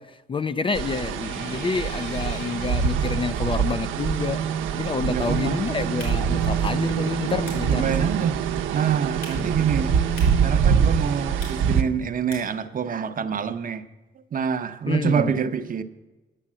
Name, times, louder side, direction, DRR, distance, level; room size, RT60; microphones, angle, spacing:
voice 1, 0.0-4.4 4.7-8.2 9.4-9.6 14.9-15.4, left 4 dB, 25° left, 0.4 m, -28 dB
sound 1, 0.7-11.8, right 7 dB, 90° right, 0.7 m, -24 dB
sound 2, 1.1-3.5 3.9-7.3, left 4 dB, 55° left, 1.9 m, -45 dB
voice 2, 5.1-5.6 7.7-8.4 8.7-9.9 10.4-13.8 14.3-15.8, right 7 dB, 45° right, 0.8 m, -26 dB
sound 3, 5.8-12.7, left 1 dB, 80° left, 4.0 m, -47 dB
9.9 x 6.6 x 7.4 m
cardioid pair, 90°, 20 cm